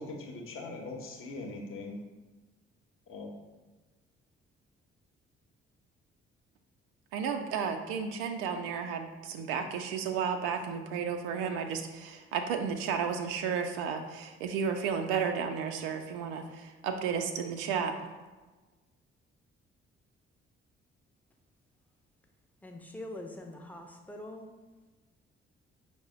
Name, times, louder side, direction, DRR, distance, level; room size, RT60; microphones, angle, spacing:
voice 1, 0.0-2.0 3.1-3.3, left 2 dB, 45° left, 1 dB, 0.9 m, -41 dB
voice 2, 7.1-17.9, right 6 dB, 65° right, 6 dB, 0.5 m, -33 dB
voice 3, 22.6-24.5, left 1 dB, 5° left, 2 dB, 0.6 m, -43 dB
5.4 x 2.1 x 4.7 m, 1.2 s
figure-of-eight pair, 40°, 31 cm